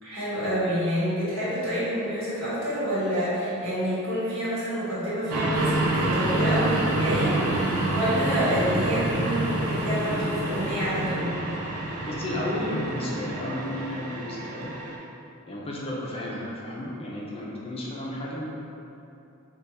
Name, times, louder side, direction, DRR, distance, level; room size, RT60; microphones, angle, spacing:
voice 1, 0.0-11.4, equal, 65° right, -10 dB, 1.4 m, -28 dB
sound 1, 5.3-15.0, right 2 dB, 85° right, 0.5 m, -28 dB
sound 2, 5.5-11.2, left 1 dB, 80° left, 0.6 m, -42 dB
voice 2, 12.1-14.7 15.5-18.5, left 1 dB, 25° left, -4 dB, 0.4 m, -33 dB
3.4 x 2.3 x 4.1 m, 2.8 s
head